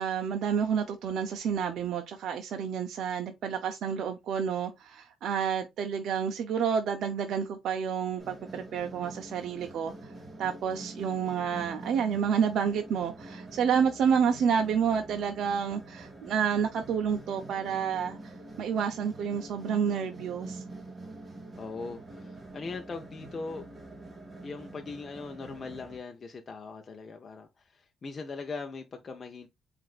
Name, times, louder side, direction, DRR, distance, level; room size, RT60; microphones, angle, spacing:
voice 1, 0.0-10.1 10.4-20.6, right 7 dB, 70° right, 0.5 m, -29 dB
sound 1, 8.2-26.0, right 2 dB, 30° right, 1.9 m, -45 dB
voice 2, 21.6-23.7 24.4-29.5, left 4 dB, 40° left, 0.6 m, -40 dB
7.5 x 2.5 x 2.4 m
cardioid pair, 90°, 0 cm